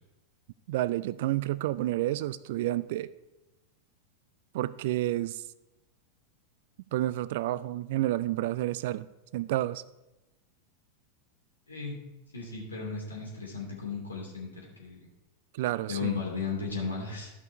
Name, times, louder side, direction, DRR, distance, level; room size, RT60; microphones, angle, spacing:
voice 1, 0.7-3.1 4.5-5.4 6.9-9.1 9.3-9.8 15.5-16.2, right 15 dB, 50° right, 18 dB, 0.3 m, -30 dB
voice 2, 11.7-12.0 12.3-15.1 15.9-17.3, left 5 dB, 80° left, -4 dB, 2.7 m, -35 dB
12.5 x 5.3 x 4.6 m, 1.0 s
figure-of-eight pair, 90°, 0 cm